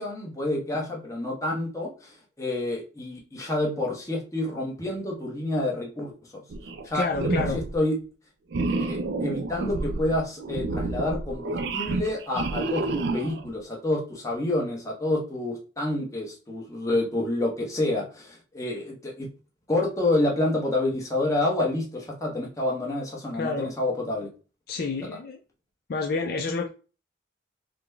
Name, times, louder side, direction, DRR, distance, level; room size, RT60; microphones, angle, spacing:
voice 1, 0.0-6.4 6.8-7.0 7.5-7.9 8.7-19.3 19.7-24.3, left 1 dB, 15° left, -2 dB, 0.9 m, -28 dB
sound 1, 6.5-6.9 7.1-7.8 8.5-13.5, right 3 dB, 60° right, 0.3 m, -29 dB
voice 2, 6.9-7.6 23.3-23.7 24.7-25.4 25.9-26.7, left 4 dB, 50° left, 3 dB, 0.4 m, -29 dB
3.9 x 2.1 x 3.3 m, 0.34 s
head